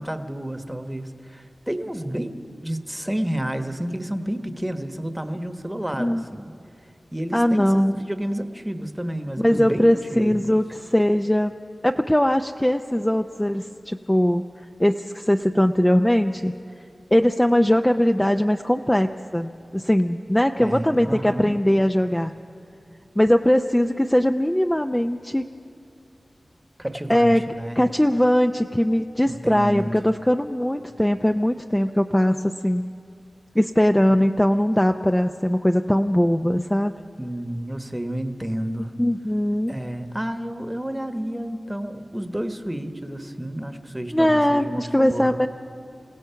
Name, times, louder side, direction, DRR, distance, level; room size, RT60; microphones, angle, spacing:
voice 1, 0.0-2.3 2.6-6.5 7.1-10.6 20.6-21.6 26.8-27.8 29.2-30.0 34.1-34.2 37.2-38.9 39.7-45.5, right 1 dB, 10° right, 8 dB, 1.1 m, -30 dB
voice 2, 7.3-8.0 9.4-11.5 11.8-14.4 14.8-16.5 17.1-22.3 23.2-25.5 27.1-27.4 27.8-32.8 33.6-36.9 39.0-39.8 44.1-45.5, equal, 10° left, 6 dB, 0.5 m, -20 dB
28.5 x 17.0 x 5.7 m, 2.7 s
wide cardioid pair, 85°, 0 cm